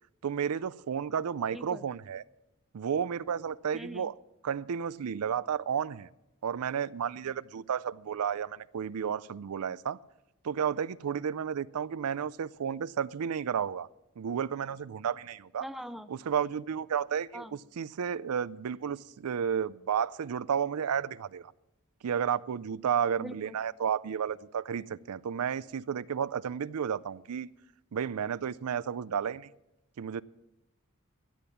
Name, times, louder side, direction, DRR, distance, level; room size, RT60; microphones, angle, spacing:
voice 1, 0.2-2.2 2.7-4.2 4.4-6.1 6.4-10.0 10.4-13.9 14.2-15.7 16.1-21.5 22.0-27.5 27.9-29.5 30.0-30.2, right 7 dB, 85° right, 18 dB, 0.4 m, -32 dB
voice 2, 1.5-1.8 3.7-4.1 15.6-16.1 17.3-17.6 23.2-23.6, equal, ahead, 11 dB, 0.4 m, -42 dB
13.5 x 8.7 x 7.2 m, 0.93 s
head